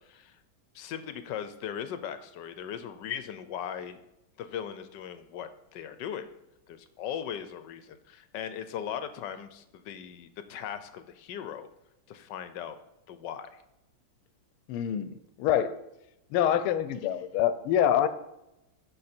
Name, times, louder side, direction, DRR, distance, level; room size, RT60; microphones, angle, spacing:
voice 1, 0.1-0.4 0.7-4.0 4.4-6.2 6.7-11.7 12.1-12.8 13.1-13.6, left 9 dB, 70° left, 11 dB, 1.1 m, -38 dB
voice 2, 14.7-15.1 15.4-15.8 16.3-18.1, left 10 dB, 90° left, 13 dB, 1.5 m, -25 dB
12.5 x 5.4 x 4.4 m, 0.90 s
omnidirectional pair, 2.3 m